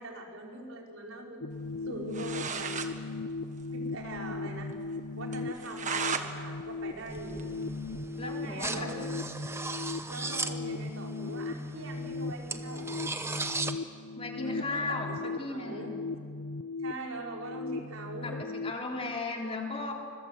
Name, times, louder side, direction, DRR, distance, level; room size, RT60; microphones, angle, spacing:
voice 1, 0.0-1.4 1.8-2.7 3.7-4.7 5.1-7.5 8.2-9.1 10.1-13.0 14.4-15.9 16.8-18.5, right 2 dB, 80° right, 0 dB, 4.5 m, -42 dB
sound 1, 1.4-18.7, left 3 dB, 85° left, 0.8 m, -38 dB
sound 2, 1.9-2.0 2.1-2.9 3.3-3.4 3.6-3.7 4.1-4.2 4.6-4.7 5.3-6.3 6.7-8.0, right 6 dB, 35° right, 1.5 m, -36 dB
sound 3, 7.1-13.7, right 2 dB, 10° right, 1.0 m, -37 dB
voice 2, 8.2-8.9 14.2-15.9 18.2-19.9, left 3 dB, 30° left, 0 dB, 3.6 m, -36 dB
26.0 x 22.0 x 8.1 m, 2.2 s
head